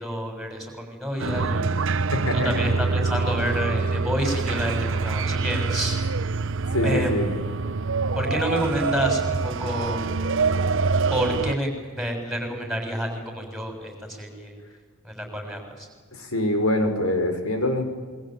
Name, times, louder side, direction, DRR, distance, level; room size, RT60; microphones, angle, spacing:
voice 1, 0.0-1.7 2.3-6.0 6.8-7.1 8.2-10.0 11.1-14.6 15.0-15.9, equal, ahead, 3 dB, 7.1 m, -29 dB
sound 1, 1.2-11.6, right 4 dB, 60° right, 0.9 m, -25 dB
voice 2, 6.7-7.4 16.1-17.8, left 1 dB, 70° left, 6 dB, 5.3 m, -24 dB
27.5 x 23.0 x 9.2 m, 1.4 s
head